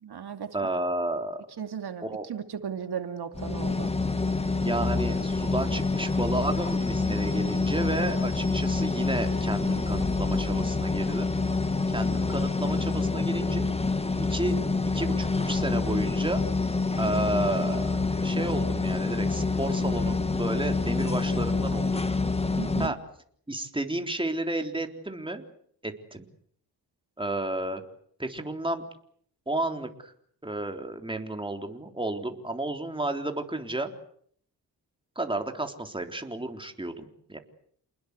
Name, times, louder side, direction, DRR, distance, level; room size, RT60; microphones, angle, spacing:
voice 1, 0.0-0.5 1.6-3.9 22.6-22.9, right 7 dB, 70° right, 7 dB, 2.6 m, -36 dB
voice 2, 0.5-1.4 2.0-2.3 4.6-11.3 11.9-13.7 14.2-14.5 14.9-16.4 17.0-22.0 22.8-23.0 23.5-25.4 25.8-26.3 27.2-27.8 28.2-28.8 29.5-30.1 30.4-33.9 35.2-37.4, right 2 dB, 10° right, 5 dB, 3.7 m, -32 dB
sound 1, 3.3-22.9, left 3 dB, 15° left, 1.7 m, -27 dB
29.0 x 20.5 x 8.3 m, 0.63 s
cardioid pair, 75°, 40 cm